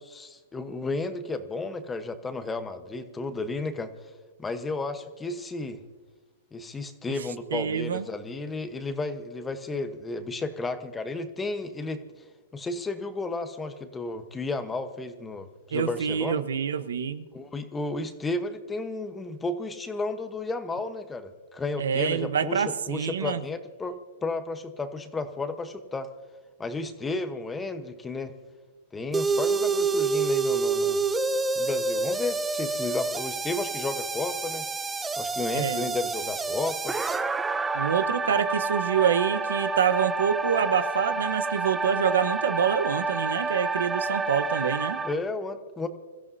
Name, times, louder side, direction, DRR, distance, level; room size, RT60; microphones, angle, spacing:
voice 1, 0.0-3.9 4.4-5.8 6.5-12.0 12.5-16.4 17.3-26.1 26.6-28.3 28.9-31.0 31.6-34.6 35.2-37.0 45.0-45.9, left 3 dB, 10° left, 9 dB, 1.0 m, -33 dB
voice 2, 7.5-8.1 15.7-17.3 21.8-23.4 35.5-35.9 37.7-45.0, right 7 dB, 80° right, 12 dB, 1.0 m, -26 dB
sound 1, 29.1-45.1, right 4 dB, 10° right, 0.6 m, -28 dB
27.5 x 15.0 x 2.7 m, 1.4 s
hypercardioid pair, 150°, 0 cm